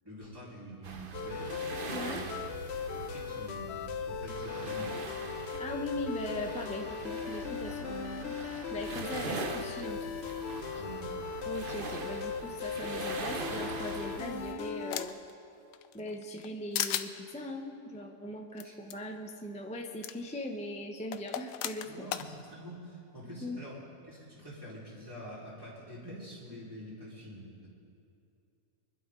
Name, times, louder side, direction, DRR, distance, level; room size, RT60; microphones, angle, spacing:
voice 1, 0.0-2.4 2.9-3.7 4.1-4.9 9.2-9.3 10.8-11.1 18.6-18.7 21.8-27.7, right 1 dB, 15° right, -8 dB, 4.1 m, -46 dB
sound 1, 0.8-14.5, right 4 dB, 40° right, 0.9 m, -42 dB
sound 2, 1.1-15.1, left 6 dB, 65° left, 0.7 m, -38 dB
voice 2, 1.9-2.3 5.6-8.4 8.7-10.1 10.6-10.8 11.4-15.2 15.9-22.1 23.4-23.6, left 1 dB, 5° left, 2 dB, 0.6 m, -40 dB
sound 3, 13.9-15.3 15.7-16.5 16.7-17.1 18.6-18.7 18.9-19.0 20.0-20.1 21.1-22.3, left 11 dB, 90° left, 1.2 m, -35 dB
24.0 x 12.0 x 3.8 m, 2.6 s
omnidirectional pair, 1.7 m